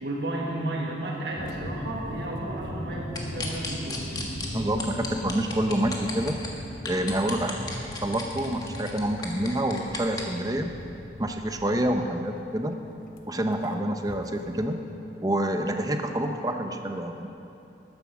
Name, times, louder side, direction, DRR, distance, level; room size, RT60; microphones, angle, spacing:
voice 1, 0.0-4.1 11.8-12.0, right 1 dB, 70° right, -2 dB, 1.5 m, -33 dB
sound 1, 1.3-14.7, left 1 dB, 50° left, 1.0 m, -39 dB
sound 2, 3.2-4.5 4.8-6.5 6.9-10.2, left 3 dB, 20° left, 1.4 m, -34 dB
voice 2, 4.5-6.4 6.8-7.6 8.0-10.7 11.2-12.7 13.3-14.8 15.2-17.3, right 1 dB, 20° right, 5 dB, 0.7 m, -27 dB
13.0 x 10.0 x 6.1 m, 2.8 s
head